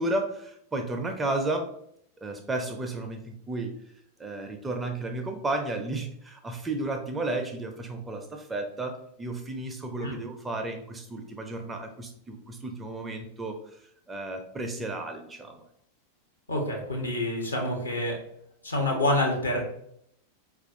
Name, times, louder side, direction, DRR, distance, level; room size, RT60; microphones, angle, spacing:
voice 1, 0.0-1.7 2.2-3.7 4.2-13.8 14.1-15.6, right 2 dB, 15° right, 4 dB, 0.4 m, -33 dB
voice 2, 16.5-18.2 18.6-19.6, left 1 dB, 80° left, 1 dB, 0.9 m, -27 dB
4.3 x 2.4 x 2.5 m, 0.73 s
figure-of-eight pair, 90°, 0 cm